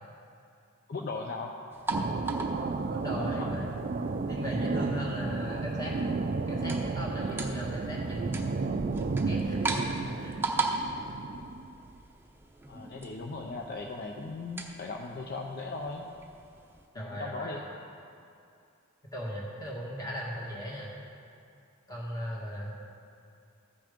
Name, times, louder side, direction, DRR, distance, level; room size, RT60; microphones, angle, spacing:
voice 1, 0.9-1.5 3.2-3.5 12.7-16.1 17.0-17.7, left 3 dB, 45° left, 1 dB, 0.6 m, -38 dB
sound 1, 1.7-16.9, right 3 dB, 10° right, 0.7 m, -39 dB
sound 2, 1.9-11.7, right 3 dB, 40° right, 0.4 m, -32 dB
voice 2, 2.9-3.7 4.3-5.9 6.5-8.7 9.2-9.6 9.9-10.4 16.9-17.7 19.1-20.9 21.9-22.7, equal, 20° left, -4 dB, 1.9 m, -37 dB
14.0 x 6.1 x 5.1 m, 2.5 s
head